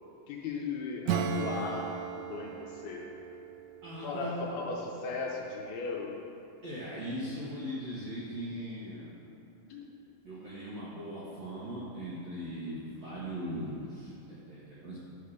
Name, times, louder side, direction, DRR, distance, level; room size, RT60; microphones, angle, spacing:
voice 1, 0.3-3.1 4.0-6.1 9.7-9.9, left 4 dB, 80° left, -2 dB, 2.4 m, -37 dB
Acoustic guitar / Strum, 1.0-5.4, right 7 dB, 85° right, 2.7 m, -37 dB
voice 2, 3.8-4.5 6.6-9.2 10.2-15.0, equal, 70° right, -9 dB, 1.5 m, -39 dB
11.0 x 3.7 x 6.5 m, 2.9 s
omnidirectional pair, 4.9 m